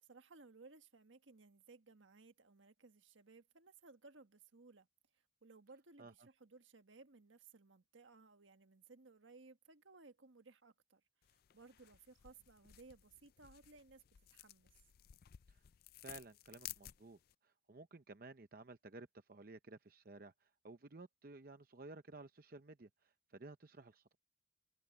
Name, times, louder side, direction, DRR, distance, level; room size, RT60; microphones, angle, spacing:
voice 1, 0.0-4.9 5.1-11.0 11.3-14.7, right 3 dB, 75° right, 1.5 m, -61 dB
sound 1, 11.2-17.3, left 14 dB, 50° left, 0.3 m, -56 dB
voice 2, 16.0-24.2, right 3 dB, 45° right, 0.7 m, -55 dB
head